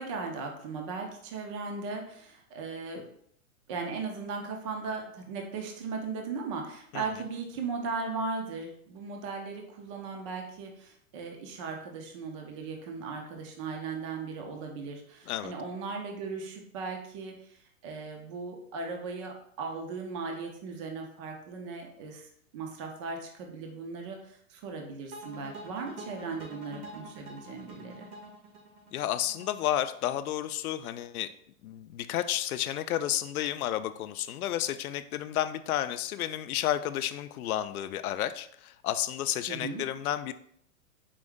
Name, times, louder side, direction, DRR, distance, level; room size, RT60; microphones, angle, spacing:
voice 1, 0.0-3.0 3.7-28.1 39.5-39.8, right 4 dB, 25° right, 2 dB, 0.3 m, -37 dB
sound 1, 25.1-30.2, right 1 dB, 85° right, 1.4 m, -46 dB
voice 2, 28.9-31.3 31.6-40.3, left 12 dB, 85° left, 11 dB, 0.5 m, -31 dB
4.6 x 2.6 x 3.6 m, 0.66 s
hypercardioid pair, 140°, 43 cm